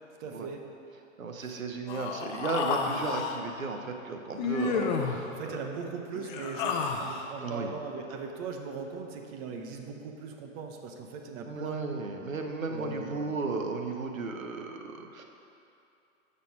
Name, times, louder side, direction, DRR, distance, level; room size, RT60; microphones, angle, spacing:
voice 1, 0.2-0.6 1.4-1.6 5.3-11.8 12.7-13.3, right 5 dB, 30° right, 3 dB, 1.0 m, -39 dB
voice 2, 1.2-5.6 7.4-7.7 11.5-15.2, right 3 dB, 90° right, 4 dB, 1.2 m, -35 dB
Human voice, 1.9-3.4 4.4-5.2 6.1-7.3, left 5 dB, 40° left, 0.9 m, -31 dB
10.5 x 6.8 x 4.6 m, 2.7 s
hypercardioid pair, 135°, 39 cm